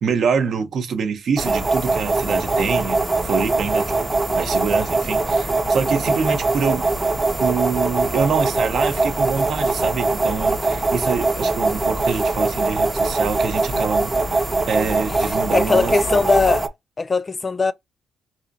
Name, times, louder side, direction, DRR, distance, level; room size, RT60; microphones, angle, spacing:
voice 1, 0.0-4.1 4.4-6.9 7.4-16.0, right 6 dB, 60° right, 0.7 m, -25 dB
sound 1, 1.4-16.7, right 3 dB, 20° right, 0.6 m, -21 dB
voice 2, 15.3-16.7 17.0-17.7, left 4 dB, 30° left, 0.3 m, -20 dB
4.1 x 2.6 x 2.6 m
cardioid pair, 90°, 0 cm